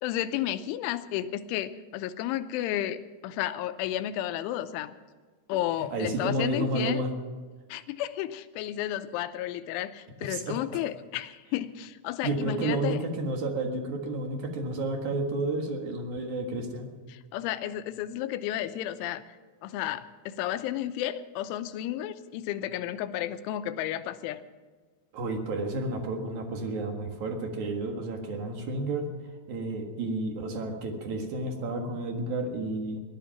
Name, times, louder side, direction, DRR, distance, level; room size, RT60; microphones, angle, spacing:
voice 1, 0.0-4.9 5.5-7.0 7.7-13.0 17.1-19.3 19.6-24.4, left 12 dB, 85° left, 11 dB, 3.1 m, -32 dB
voice 2, 5.9-7.1 10.2-10.6 12.2-16.9 25.1-29.1 29.5-33.0, right 2 dB, 55° right, 3 dB, 2.2 m, -31 dB
19.0 x 12.0 x 5.8 m, 1.4 s
omnidirectional pair, 5.6 m